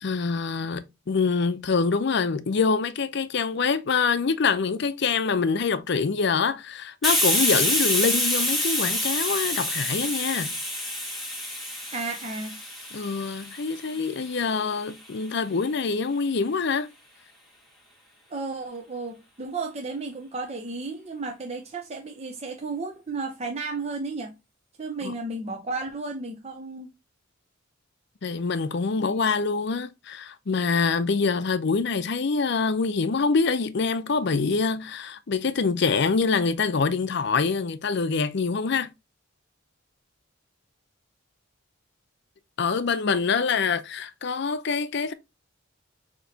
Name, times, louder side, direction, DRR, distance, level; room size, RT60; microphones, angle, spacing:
voice 1, 0.0-10.5 12.9-16.9 25.0-25.1 28.2-38.9 42.6-45.1, left 4 dB, 55° left, 0.5 m, -25 dB
Hiss, 7.0-14.4, left 1 dB, ahead, 1.3 m, -27 dB
voice 2, 11.9-12.6 18.3-24.3 24.8-26.9, right 3 dB, 30° right, 0.5 m, -33 dB
6.3 x 2.9 x 2.7 m
head